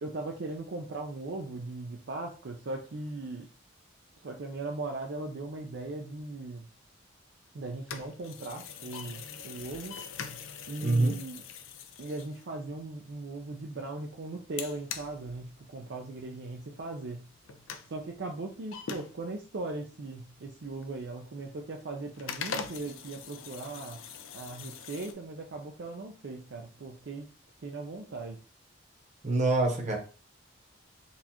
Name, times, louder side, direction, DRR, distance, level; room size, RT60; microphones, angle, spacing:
voice 1, 0.0-3.5 4.2-6.7 7.5-10.0 10.7-11.4 12.0-17.2 17.9-24.0 24.3-27.3 27.6-28.4, right 2 dB, 55° right, 1 dB, 0.4 m, -38 dB
sound 1, 7.8-13.0 14.6-16.0 16.3-16.4 16.8-16.9 17.2-17.9 18.7-19.7 20.1-21.3 21.7-21.8 22.1-25.1, left 6 dB, 75° left, 0.5 m, -42 dB
voice 2, 10.8-11.1 29.2-30.0, right 2 dB, 35° right, 1 dB, 0.9 m, -25 dB
4.0 x 2.4 x 2.9 m, 0.36 s
head